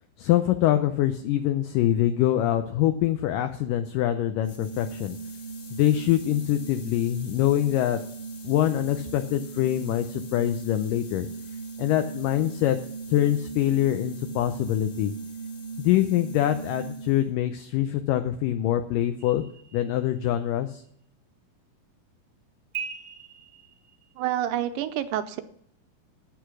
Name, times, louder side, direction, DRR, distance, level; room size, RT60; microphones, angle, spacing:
voice 1, 0.2-5.2 5.8-8.0 8.4-11.3 11.8-12.8 13.1-15.1 15.8-19.4 19.7-20.8, left 12 dB, 80° left, 8 dB, 2.1 m, -24 dB
sound 1, 4.4-17.4, right 4 dB, 60° left, 3.2 m, -38 dB
sound 2, 19.2-20.4 22.7-24.2, right 7 dB, 40° right, 0.8 m, -40 dB
voice 2, 24.2-25.4, right 12 dB, 80° right, 10 dB, 2.1 m, -28 dB
9.3 x 8.8 x 6.0 m, 0.66 s
omnidirectional pair, 4.3 m